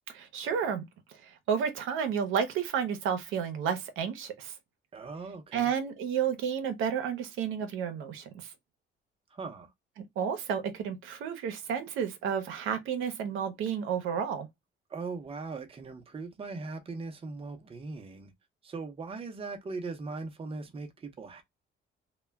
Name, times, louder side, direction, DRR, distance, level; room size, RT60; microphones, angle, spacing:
voice 1, 0.1-0.8 1.2-4.5 5.5-8.2 10.0-14.5, right 7 dB, 85° right, 0.6 m, -31 dB
voice 2, 4.9-5.7 9.3-9.7 14.9-18.3 18.6-21.4, right 4 dB, 30° right, 0.6 m, -39 dB
2.2 x 2.1 x 3.3 m
cardioid pair, 90°, 20 cm